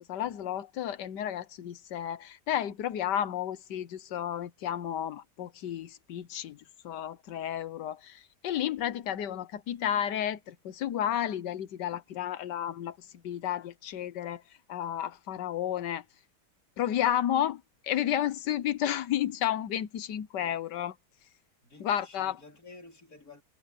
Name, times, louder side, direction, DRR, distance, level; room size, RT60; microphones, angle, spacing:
voice 1, 0.1-14.4 14.7-16.0 16.8-20.9 21.8-22.4, left 11 dB, 85° left, 1.6 m, -32 dB
voice 2, 21.6-23.4, left 3 dB, 60° left, 4.5 m, -52 dB
omnidirectional pair, 1.8 m